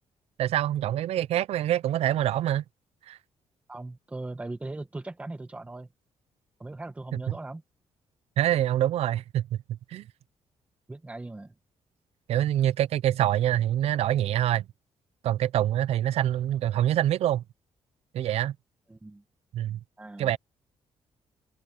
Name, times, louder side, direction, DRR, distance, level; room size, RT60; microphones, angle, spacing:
voice 1, 0.4-2.6 3.1-3.2 7.3-7.4 8.4-10.1 12.3-14.7 15.2-17.4 18.1-18.6 19.5-19.8 20.2-20.4, right 12 dB, 70° right, 0.5 m, -25 dB
voice 2, 3.7-5.9 6.6-7.6 10.9-11.5 18.9-19.2 20.0-20.3, right 2 dB, 10° right, 1.4 m, -39 dB
cardioid pair, 145°, 11 cm